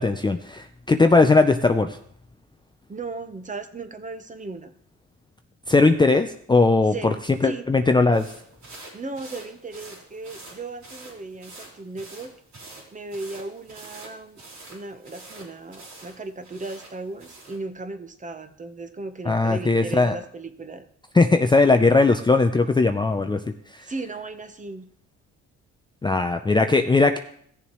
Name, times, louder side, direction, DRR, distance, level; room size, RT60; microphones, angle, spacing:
voice 1, 0.0-2.0 5.7-7.1 7.4-8.3 19.3-20.1 21.1-23.4 26.0-27.2, left 3 dB, 15° left, 6 dB, 0.5 m, -19 dB
voice 2, 2.9-4.7 6.9-7.6 8.9-12.3 12.9-14.4 14.7-20.8 23.8-24.8, right 3 dB, 25° right, 8 dB, 1.0 m, -36 dB
sound 1, 8.1-17.6, right 2 dB, 75° right, 3.3 m, -46 dB
16.0 x 7.0 x 3.1 m, 0.65 s
cardioid pair, 90°, 30 cm